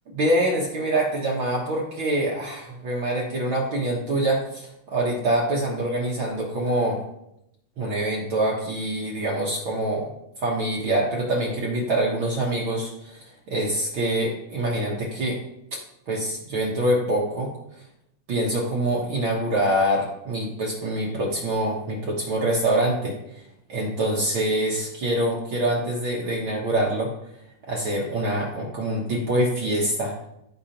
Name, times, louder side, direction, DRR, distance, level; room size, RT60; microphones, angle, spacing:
voice 1, 0.1-7.0 7.8-10.1 10.4-15.4 16.1-17.5 18.3-23.2 23.7-27.1 27.7-30.2, right 1 dB, 65° right, -3 dB, 1.2 m, -25 dB
15.0 x 5.1 x 2.9 m, 0.81 s
omnidirectional pair, 4.2 m